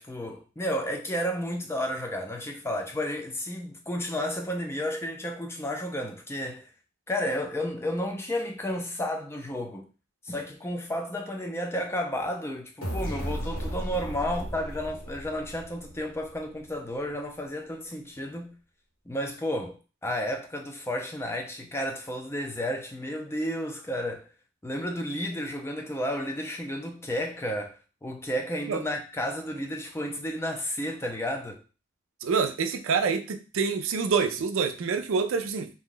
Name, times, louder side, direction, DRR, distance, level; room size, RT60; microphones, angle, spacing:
voice 1, 0.0-6.7 7.1-9.9 10.2-18.6 19.1-24.3 24.6-27.8 28.0-31.6, equal, 10° left, 0.4 m, -32 dB
sound 1, 12.8-16.5, equal, 90° left, 1.4 m, -35 dB
voice 2, 32.2-35.7, right 5 dB, 65° right, 0.4 m, -26 dB
2.7 x 2.2 x 3.8 m
head